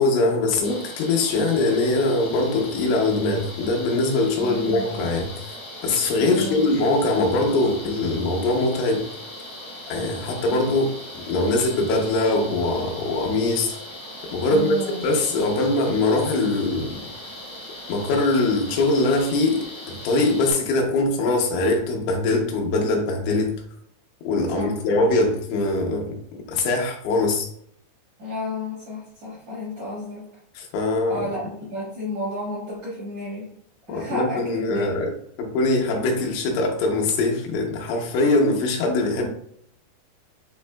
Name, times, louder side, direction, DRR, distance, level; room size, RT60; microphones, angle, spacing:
voice 1, 0.0-5.6 5.8-9.1 9.9-13.8 14.2-17.0 17.9-23.6 24.2-26.2 26.5-27.5 30.6-31.2 33.9-39.3, left 2 dB, 85° left, 1 dB, 3.2 m, -22 dB
sound 1, 0.6-20.5, left 1 dB, 70° left, 1.4 m, -39 dB
voice 2, 4.4-5.1 6.3-6.6 14.5-15.1 24.5-24.8 28.2-30.2 31.1-33.5 33.9-34.9, left 1 dB, 70° right, -8 dB, 1.6 m, -32 dB
7.3 x 2.6 x 2.2 m, 0.69 s
omnidirectional pair, 5.4 m